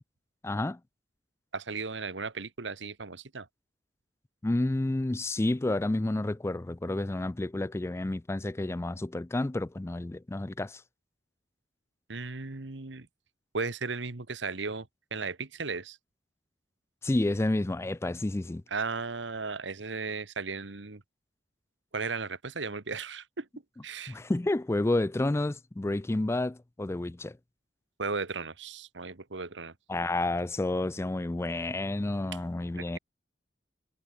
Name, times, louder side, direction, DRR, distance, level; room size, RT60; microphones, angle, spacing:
voice 1, 0.4-0.8 4.4-10.8 17.0-18.6 24.1-27.4 29.9-33.0, left 2 dB, 15° left, 0.4 m, -30 dB
voice 2, 1.5-3.5 12.1-13.1 13.5-16.0 18.7-21.0 21.9-23.5 23.8-24.2 28.0-29.7 32.8-33.0, right 4 dB, 75° right, 1.5 m, -36 dB
head